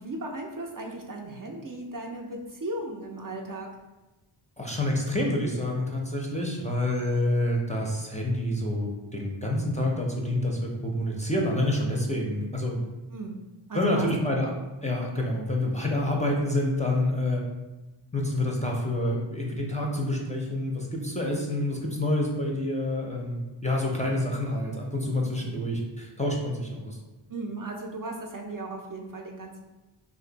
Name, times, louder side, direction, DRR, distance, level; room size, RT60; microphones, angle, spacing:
voice 1, 0.0-3.7 13.1-13.4 13.7-14.1 27.3-29.6, right 2 dB, 45° right, 1 dB, 0.5 m, -36 dB
voice 2, 4.6-12.8 13.7-14.5 14.8-17.4 18.1-27.0, left 1 dB, 15° left, -2 dB, 0.5 m, -28 dB
2.6 x 2.5 x 3.9 m, 1.1 s
wide cardioid pair, 50°, 50 cm